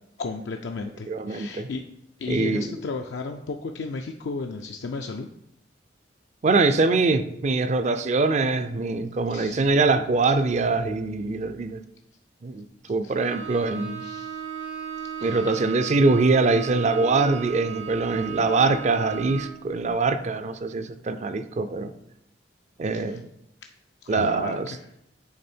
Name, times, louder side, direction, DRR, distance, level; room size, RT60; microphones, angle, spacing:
voice 1, 0.2-1.8 2.2-5.3 9.3-9.7 13.0-13.1 14.0-14.4 15.2-15.6 22.9-23.2 24.0-24.8, left 4 dB, 70° left, 3 dB, 0.4 m, -34 dB
voice 2, 1.1-1.7 2.3-2.8 6.4-11.8 12.4-14.0 15.2-21.9 22.8-23.3 24.1-24.7, right 3 dB, 40° right, 11 dB, 0.4 m, -23 dB
Bowed string instrument, 13.2-19.7, right 8 dB, 80° right, 1.3 m, -36 dB
8.7 x 3.4 x 4.4 m, 0.80 s
head